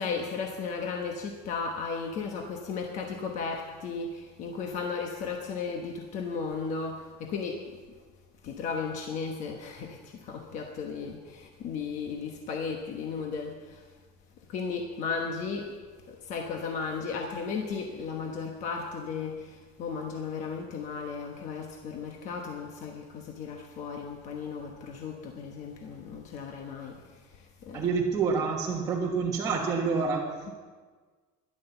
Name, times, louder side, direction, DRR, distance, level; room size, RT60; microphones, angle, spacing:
voice 1, 0.0-7.6 8.4-13.9 14.5-15.7 16.1-27.9 30.5-30.6, left 5 dB, 40° left, 2 dB, 1.1 m, -35 dB
voice 2, 27.7-30.3, right 5 dB, 20° right, -5 dB, 1.3 m, -27 dB
13.0 x 11.5 x 7.0 m, 1.5 s
cardioid pair, 175°, 18 cm